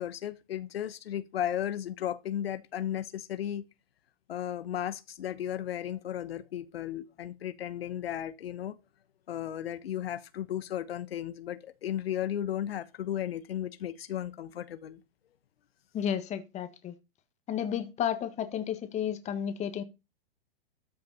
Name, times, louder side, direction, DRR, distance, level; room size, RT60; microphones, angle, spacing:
voice 1, 0.0-3.6 4.3-8.7 9.3-15.0, left 11 dB, 75° left, 1.2 m, -35 dB
voice 2, 15.9-16.9 17.5-19.8, left 9 dB, 20° left, 1.6 m, -32 dB
13.0 x 6.8 x 4.1 m
hypercardioid pair, 135°, 30 cm